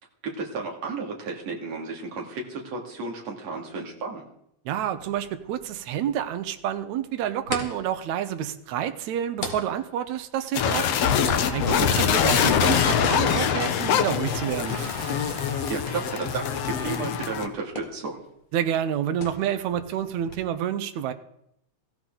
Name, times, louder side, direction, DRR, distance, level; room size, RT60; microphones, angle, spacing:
voice 1, 0.2-4.2 11.7-12.0 15.5-18.2, right 4 dB, 60° right, 0 dB, 3.6 m, -33 dB
voice 2, 4.7-10.9 11.5-11.6 11.9-14.8 18.5-21.1, right 10 dB, 80° right, 9 dB, 2.2 m, -28 dB
sound 1, 4.9-20.4, left 2 dB, 30° left, 2.0 m, -43 dB
sound 2, 10.5-17.5, left 8 dB, 65° left, 1.9 m, -24 dB
Bathtub (filling or washing) / Splash splatter, 14.5-17.0, right 3 dB, 30° right, 2.6 m, -43 dB
17.0 x 16.0 x 3.9 m, 0.75 s
omnidirectional pair, 3.3 m